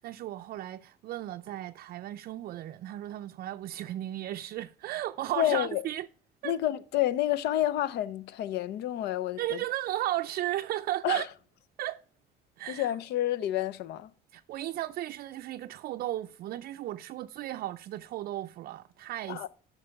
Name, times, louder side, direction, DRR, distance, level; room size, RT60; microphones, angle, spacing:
voice 1, 0.0-6.1 6.4-6.6 9.4-11.3 11.8-12.0 12.6-12.9 14.3-19.5, right 14 dB, 60° right, 0.4 m, -35 dB
voice 2, 5.4-5.8 6.4-9.6 11.0-11.3 12.7-14.1 19.3-19.5, left 12 dB, 75° left, 0.6 m, -29 dB
8.7 x 6.0 x 5.0 m
cardioid pair, 110°, 17 cm